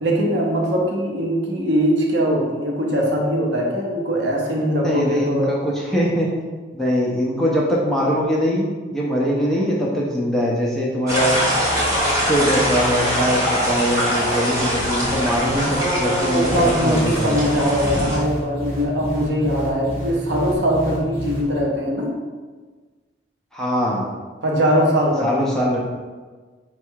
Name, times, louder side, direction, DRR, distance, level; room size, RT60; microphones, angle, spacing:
voice 1, 0.0-5.5 15.5-22.1 24.4-25.5, equal, 65° right, -1 dB, 0.8 m, -21 dB
voice 2, 4.8-6.3 6.7-8.7 8.9-11.5 12.1-17.5 23.5-24.0 25.2-25.8, equal, ahead, -5 dB, 0.5 m, -22 dB
sound 1, 11.1-18.2, equal, 15° right, 1.2 m, -22 dB
sound 2, 16.4-21.6, right 1 dB, 50° right, 1.2 m, -30 dB
4.4 x 2.3 x 4.5 m, 1.4 s
head